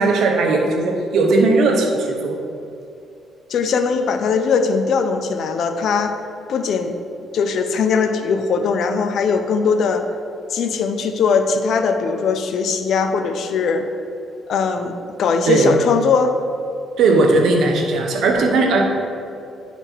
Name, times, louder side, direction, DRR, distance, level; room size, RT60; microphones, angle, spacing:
voice 1, 0.0-2.5 15.4-15.8 17.0-19.1, right 3 dB, 75° right, 2 dB, 1.0 m, -17 dB
voice 2, 3.5-6.1 6.5-7.0 7.3-10.1 10.5-13.9 14.5-16.3, left 5 dB, 70° left, 7 dB, 0.6 m, -20 dB
10.0 x 4.2 x 4.4 m, 2.5 s
cardioid pair, 90°, 0 cm